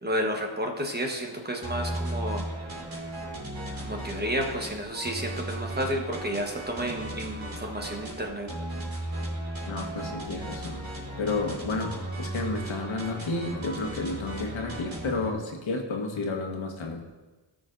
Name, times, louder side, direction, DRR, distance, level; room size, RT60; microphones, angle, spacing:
voice 1, 0.0-2.4 3.8-8.5, equal, 20° right, 2 dB, 1.1 m, -31 dB
sound 1, 1.6-15.3, right 1 dB, 50° right, 2.6 m, -36 dB
voice 2, 9.6-10.8 11.2-17.0, left 3 dB, 80° left, 2 dB, 1.4 m, -31 dB
17.5 x 6.2 x 2.6 m, 1.2 s
wide cardioid pair, 140°, 46 cm